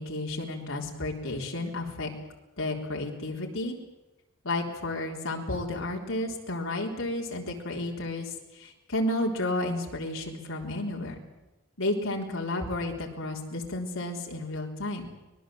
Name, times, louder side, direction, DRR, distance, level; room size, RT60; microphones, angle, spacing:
voice 1, 0.0-2.1 2.6-3.8 4.4-11.2 11.8-15.1, left 2 dB, 70° left, 0 dB, 3.7 m, -32 dB
24.5 x 20.0 x 7.7 m, 1.0 s
head